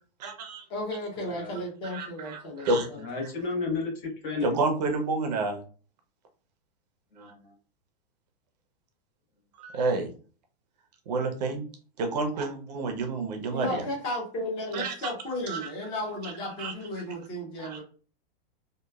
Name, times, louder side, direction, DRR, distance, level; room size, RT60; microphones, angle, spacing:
voice 1, 0.2-0.6 1.8-2.9 4.4-5.6 7.2-7.3 9.6-10.1 11.1-11.7 12.0-13.8 14.7-15.1 15.5-15.7 16.2-16.3 16.6-16.7 17.6-17.8, right 3 dB, 45° right, 5 dB, 0.5 m, -29 dB
voice 2, 0.7-3.0 13.5-17.8, left 1 dB, 15° left, -2 dB, 0.5 m, -34 dB
voice 3, 1.2-1.6 2.9-4.6 7.1-7.5 12.1-12.2, left 4 dB, 60° left, 0 dB, 1.0 m, -33 dB
2.9 x 2.2 x 2.2 m, 0.39 s
supercardioid pair, 170°, 29 cm